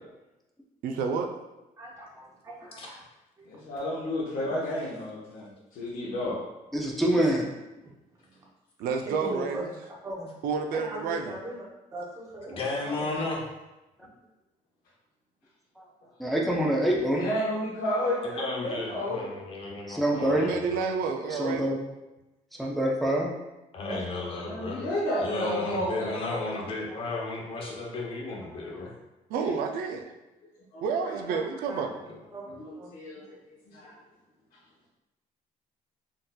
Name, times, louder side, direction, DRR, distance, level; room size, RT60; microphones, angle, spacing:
voice 1, 0.8-1.3 8.8-9.7 10.4-11.3 20.2-21.7 25.4-25.7 29.3-30.1 30.8-31.9, right 5 dB, 75° right, 4 dB, 0.4 m, -30 dB
voice 2, 1.8-2.1 2.4-3.0 3.4-3.5 8.2-8.3 9.0-9.6 10.0-10.4 10.7-11.6 11.9-13.1 21.1-21.4 23.9-24.2 25.1-25.2 25.6-25.7 31.1-31.4 31.7-31.8 32.3-32.4 32.7-32.9, right 1 dB, 20° right, -3 dB, 0.7 m, -39 dB
voice 3, 3.5-6.4 17.1-19.2 24.3-26.6 30.7-31.1 32.5-33.4 33.7-33.9, left 1 dB, 80° left, -8 dB, 1.0 m, -32 dB
voice 4, 6.7-7.5 15.8-15.9 16.2-17.3 19.9-20.6 21.4-21.8 22.6-23.3, right 1 dB, ahead, -2 dB, 0.4 m, -25 dB
voice 5, 12.5-13.5 18.4-20.9 23.7-24.9 25.2-28.9 32.0-32.2, left 3 dB, 40° left, -1 dB, 0.6 m, -34 dB
3.8 x 2.7 x 2.2 m, 1.0 s
cardioid pair, 160°, 15 cm